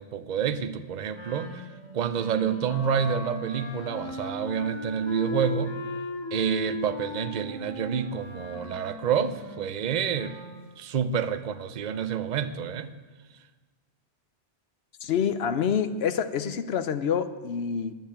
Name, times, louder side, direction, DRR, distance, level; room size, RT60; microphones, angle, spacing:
voice 1, 0.0-1.6 1.9-5.8 6.3-10.4 10.8-12.9, right 7 dB, 50° right, 11 dB, 0.7 m, -28 dB
Wind instrument woodwind instrument, 1.1-10.6, left 1 dB, 25° left, 2.0 m, -37 dB
voice 2, 15.0-17.9, left 7 dB, 80° left, 12 dB, 1.0 m, -27 dB
10.0 x 9.1 x 8.6 m, 1.4 s
omnidirectional pair, 1.0 m